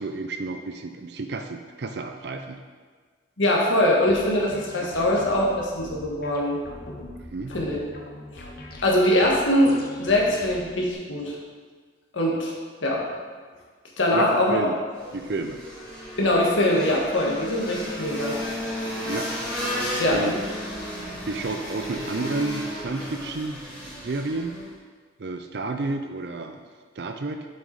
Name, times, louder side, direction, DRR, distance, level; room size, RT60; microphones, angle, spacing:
voice 1, 0.0-2.6 4.8-4.9 7.3-7.6 14.1-14.8 15.1-15.6 19.1-19.3 20.1-20.4 21.3-24.5 25.2-26.6 27.0-27.5, right 3 dB, 60° right, 6 dB, 0.5 m, -31 dB
voice 2, 3.4-6.6 7.5-7.8 8.8-11.4 12.1-12.5 12.8-13.0 14.0-14.7 16.2-18.4 20.0-20.3, left 1 dB, 85° left, -3 dB, 1.6 m, -22 dB
sound 1, 4.1-10.9, left 1 dB, 50° left, 0.9 m, -42 dB
sound 2, 14.9-24.7, equal, 5° left, 2.0 m, -33 dB
7.5 x 6.1 x 4.0 m, 1.5 s
head